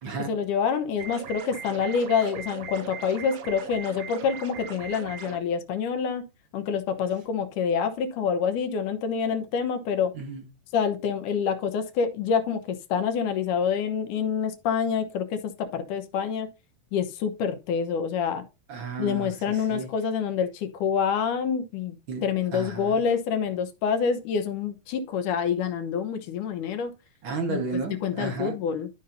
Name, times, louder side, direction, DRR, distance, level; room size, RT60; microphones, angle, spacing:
voice 1, 0.3-6.3 6.5-10.1 10.7-16.5 16.9-18.4 19.0-22.0 22.2-26.9 27.5-27.6 28.0-28.9, left 6 dB, 80° left, 2.4 m, -27 dB
sound 1, 1.0-5.4, right 7 dB, 70° right, 1.7 m, -39 dB
voice 2, 10.1-10.5 18.7-19.9 22.1-22.2 22.5-23.0 27.2-28.6, right 4 dB, 50° right, 1.8 m, -33 dB
12.5 x 5.4 x 2.7 m
omnidirectional pair, 3.7 m